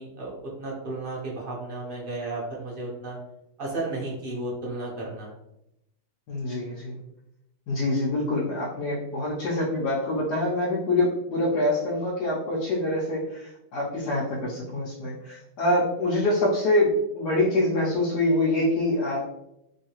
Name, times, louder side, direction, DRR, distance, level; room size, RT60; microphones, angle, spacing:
voice 1, 0.0-3.2 3.6-5.3, right 2 dB, 45° right, -4 dB, 0.8 m, -33 dB
voice 2, 6.3-7.0 7.7-19.3, left 1 dB, 75° left, -5 dB, 1.2 m, -25 dB
3.1 x 2.8 x 2.9 m, 0.84 s
omnidirectional pair, 1.8 m